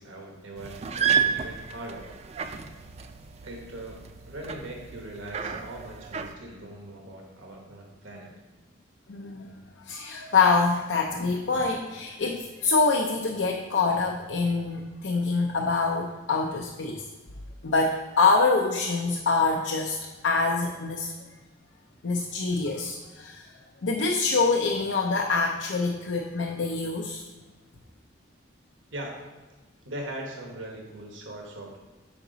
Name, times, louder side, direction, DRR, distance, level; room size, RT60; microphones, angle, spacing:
voice 1, 0.0-2.1 3.4-8.3 28.9-29.1 29.8-31.8, right 1 dB, 90° right, 0 dB, 1.2 m, -40 dB
sound 1, 0.6-6.3, right 7 dB, 35° right, 0.3 m, -31 dB
voice 2, 9.1-9.5 9.9-17.0 17.6-20.0 20.2-21.1 22.0-23.4 23.8-27.2, left 4 dB, 80° left, 0 dB, 0.6 m, -25 dB
5.8 x 4.9 x 3.9 m, 1.2 s
head